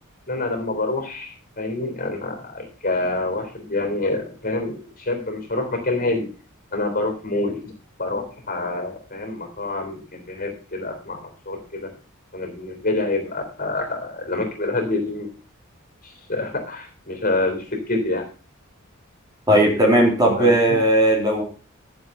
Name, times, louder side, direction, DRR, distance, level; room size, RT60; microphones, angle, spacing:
voice 1, 0.3-6.3 6.7-7.7 8.0-11.9 12.3-15.3 16.0-18.2 20.4-20.8, left 2 dB, 40° left, 3 dB, 3.3 m, -27 dB
voice 2, 19.5-21.4, right 1 dB, 20° right, 0 dB, 3.4 m, -17 dB
12.0 x 7.3 x 5.4 m, 0.35 s
head